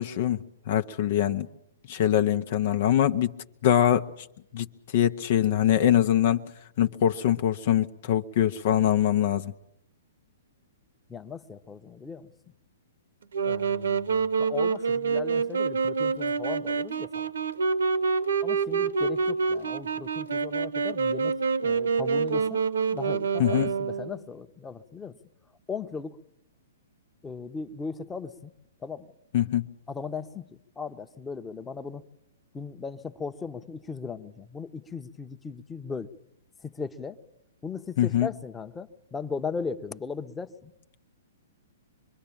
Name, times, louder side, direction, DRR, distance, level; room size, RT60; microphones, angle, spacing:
voice 1, 0.0-1.5 1.9-3.3 3.6-4.3 4.5-6.4 6.8-9.5 23.4-23.7 29.3-29.7 38.0-38.3, left 11 dB, 50° left, 1.0 m, -23 dB
voice 2, 11.1-12.3 13.4-17.3 18.4-22.6 22.9-25.1 25.7-26.2 27.2-28.5 28.8-29.1 29.9-32.0 32.5-36.1 36.6-37.2 37.6-40.7, left 5 dB, 10° left, 1.2 m, -37 dB
Wind instrument woodwind instrument, 13.3-24.2, right 5 dB, 70° right, 1.3 m, -27 dB
26.0 x 23.0 x 8.7 m
figure-of-eight pair, 115°, 0 cm